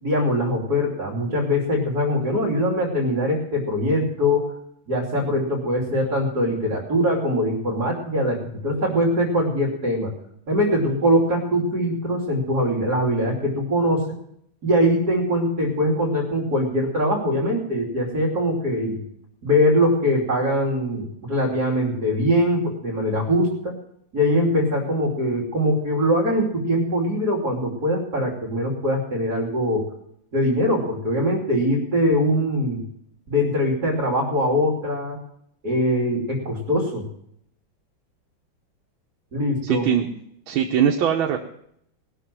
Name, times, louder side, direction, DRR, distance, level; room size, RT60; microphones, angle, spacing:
voice 1, 0.0-4.5 4.9-10.1 10.5-14.2 14.6-19.0 19.4-23.8 24.1-29.9 30.3-32.8 33.3-35.2 35.6-37.0 39.3-39.9, equal, 50° right, -2 dB, 3.3 m, -22 dB
voice 2, 39.6-40.1 40.5-41.4, right 8 dB, 85° right, 2 dB, 1.9 m, -21 dB
19.5 x 6.8 x 7.4 m, 0.71 s
omnidirectional pair, 2.1 m